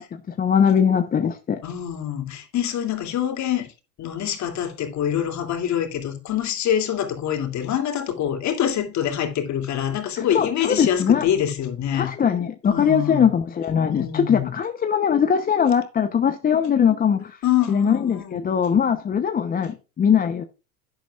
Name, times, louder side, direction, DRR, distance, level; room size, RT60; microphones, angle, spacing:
voice 1, 0.0-1.6 10.2-11.2 11.9-17.4 17.7-20.4, left 7 dB, 20° left, 0.8 m, -21 dB
voice 2, 1.6-3.7 4.0-12.1 12.7-13.3 13.9-14.5 17.4-18.5, left 10 dB, 35° left, 2.9 m, -25 dB
11.5 x 10.0 x 2.4 m
hypercardioid pair, 110°, 47 cm